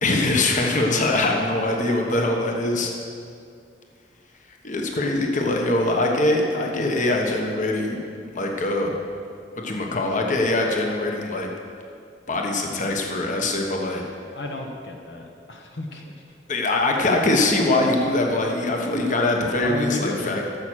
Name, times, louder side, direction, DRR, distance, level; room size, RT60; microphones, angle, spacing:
voice 1, 0.0-2.9 4.6-8.0 8.3-8.9 9.6-11.5 12.3-14.0 16.5-20.4, left 2 dB, 45° left, 1 dB, 1.2 m, -22 dB
voice 2, 14.3-16.0 19.6-20.3, left 2 dB, 70° left, 2 dB, 1.2 m, -32 dB
11.5 x 7.4 x 6.4 m, 2.3 s
head